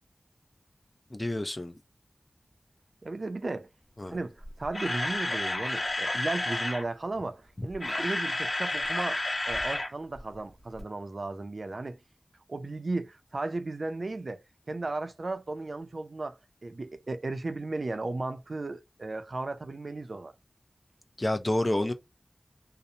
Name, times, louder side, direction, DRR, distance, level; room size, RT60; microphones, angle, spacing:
voice 1, 1.1-1.7 4.0-4.2 7.6-7.7 21.2-21.9, left 1 dB, 35° left, 0.4 m, -29 dB
voice 2, 3.0-3.7 4.1-12.0 12.5-14.4 14.7-20.3, right 2 dB, 70° right, 0.4 m, -35 dB
Camera, 4.4-6.8 7.6-9.9 10.2-10.3 10.8-10.9, left 1 dB, 50° left, 1.1 m, -31 dB
2.8 x 2.0 x 2.6 m
wide cardioid pair, 55°, 0 cm